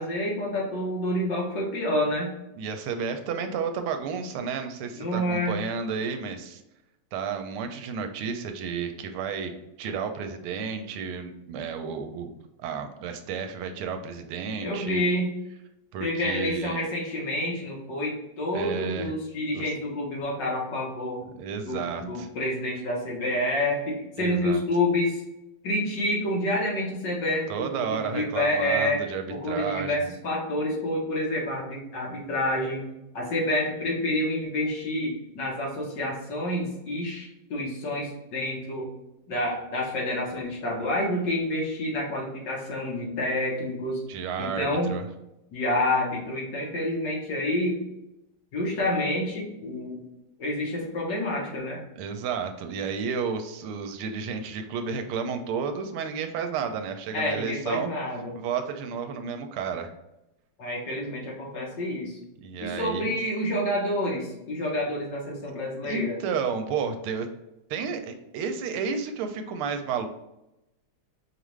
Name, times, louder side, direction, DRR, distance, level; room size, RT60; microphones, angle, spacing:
voice 1, 0.0-2.3 5.0-5.6 14.6-15.3 16.0-21.2 21.7-25.2 25.6-29.0 29.3-32.9 33.1-38.9 39.3-44.0 44.4-44.9 45.5-47.8 48.5-50.0 50.4-51.8 57.1-58.3 60.6-62.2 62.6-66.2, left 1 dB, 60° left, -3 dB, 1.7 m, -28 dB
voice 2, 2.6-6.6 7.1-9.5 9.8-12.3 12.6-15.1 15.9-16.8 18.5-19.1 19.5-19.6 21.4-22.3 24.2-24.6 27.5-30.1 44.1-45.1 52.0-57.9 58.4-59.9 62.4-63.2 65.8-67.3 67.7-70.1, right 6 dB, 85° right, 6 dB, 1.5 m, -32 dB
5.0 x 2.5 x 3.1 m, 0.89 s
omnidirectional pair, 2.3 m